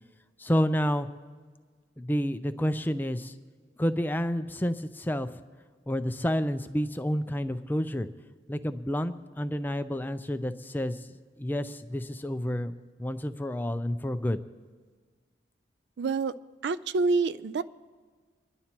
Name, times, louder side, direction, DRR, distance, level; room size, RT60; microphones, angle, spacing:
voice 1, 0.4-1.1 2.0-3.3 3.8-5.3 5.9-8.1 8.5-11.0 11.4-12.7 13.0-14.4, equal, 10° left, 10 dB, 0.4 m, -29 dB
voice 2, 16.0-16.3 16.6-17.6, right 4 dB, 70° right, 14 dB, 0.4 m, -27 dB
27.0 x 11.0 x 2.9 m, 1.5 s
head